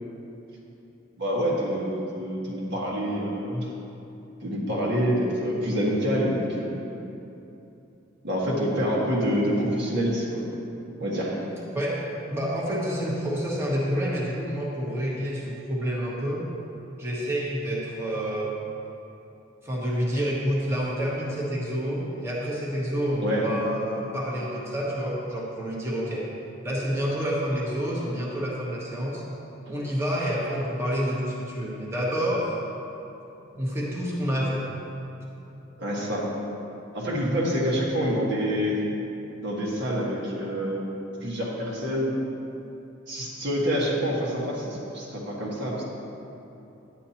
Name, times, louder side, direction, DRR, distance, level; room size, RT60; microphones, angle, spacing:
voice 1, 1.2-3.7 4.4-6.7 8.2-10.4 11.0-11.4 23.2-23.5 35.8-36.3 36.9-38.8 39.4-40.9 41.2-42.2 43.1-45.8, equal, 60° right, -4 dB, 1.6 m, -27 dB
voice 2, 11.7-16.4 17.0-18.6 19.6-26.2 26.6-29.2 29.7-32.5 33.5-34.6, equal, 15° right, -6 dB, 1.2 m, -28 dB
10.5 x 9.7 x 2.9 m, 2.9 s
head